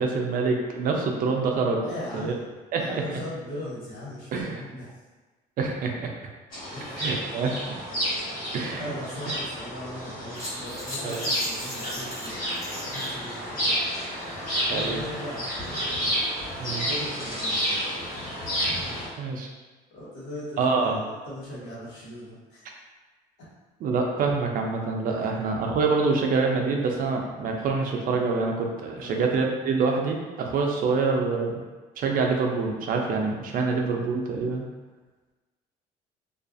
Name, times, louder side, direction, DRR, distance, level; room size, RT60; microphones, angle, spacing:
voice 1, 0.0-1.8 2.1-2.3 2.7-2.8 3.1-3.2 4.3-4.6 5.6-6.1 7.0-7.7 8.5-8.9 11.0-11.3 14.7-15.0 16.6-16.9 19.2-19.5 20.6-21.0 23.8-31.6 32.0-34.6, right 4 dB, 55° right, 1 dB, 0.5 m, -26 dB
voice 2, 1.8-4.9 6.7-7.2 8.2-8.5 8.8-14.0 14.7-15.8 16.8-17.8 19.9-21.0 21.3-22.6 25.0-25.1 28.9-29.2, left 1 dB, 80° left, -8 dB, 1.2 m, -39 dB
sound 1, 6.5-19.1, equal, 55° left, 1.3 m, -30 dB
sound 2, 10.3-19.1, equal, 20° left, 1.3 m, -40 dB
2.5 x 2.4 x 2.5 m, 1.3 s
cardioid pair, 110°, 17 cm